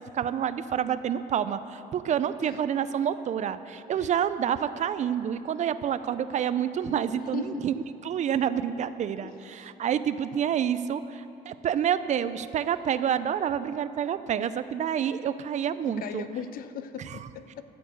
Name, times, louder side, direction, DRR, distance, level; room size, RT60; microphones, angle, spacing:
voice 1, 0.1-7.7 8.0-16.3 17.0-17.2, right 9 dB, 45° right, 13 dB, 0.4 m, -28 dB
voice 2, 7.3-7.7 9.2-9.3 15.9-17.6, left 9 dB, 60° left, 11 dB, 0.6 m, -38 dB
13.0 x 4.7 x 8.3 m, 2.8 s
cardioid pair, 110°, 17 cm